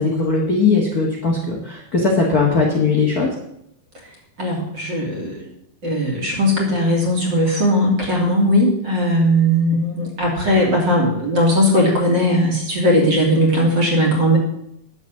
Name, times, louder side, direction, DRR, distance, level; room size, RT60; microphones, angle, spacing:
voice 1, 0.0-3.3, left 4 dB, 65° left, -1 dB, 0.9 m, -19 dB
voice 2, 4.4-5.5 5.8-14.4, equal, 30° right, -2 dB, 3.1 m, -18 dB
10.5 x 7.3 x 7.4 m, 0.76 s
omnidirectional pair, 4.6 m